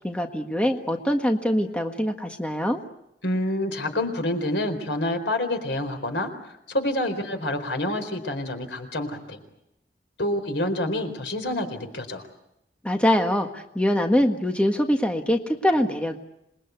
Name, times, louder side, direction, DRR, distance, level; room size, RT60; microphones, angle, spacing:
voice 1, 0.0-2.8 12.8-16.2, left 1 dB, 5° left, 4 dB, 1.6 m, -23 dB
voice 2, 3.2-6.3 6.7-9.4 10.2-12.2, left 1 dB, 90° left, 7 dB, 4.2 m, -27 dB
27.0 x 21.5 x 8.2 m, 0.83 s
head